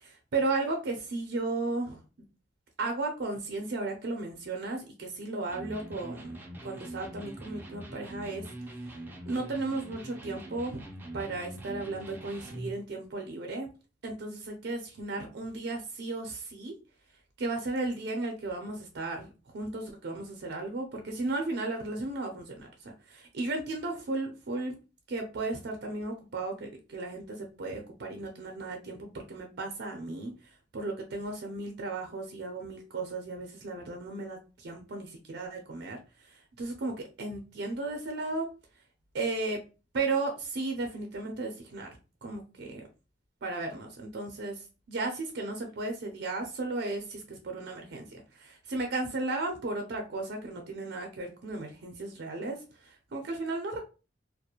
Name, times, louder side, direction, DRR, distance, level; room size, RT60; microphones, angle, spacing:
voice 1, 0.0-2.0 2.8-6.3 6.6-8.4 9.3-10.8 11.1-13.7 14.0-16.7 17.4-24.7 25.1-30.3 30.7-36.0 36.6-38.5 39.1-39.6 39.9-41.9 42.2-42.8 43.4-53.8, right 3 dB, 65° right, 3 dB, 0.5 m, -35 dB
Electric guitar, 5.5-12.8, right 1 dB, 10° right, 0.4 m, -43 dB
2.3 x 2.1 x 2.8 m, 0.32 s
head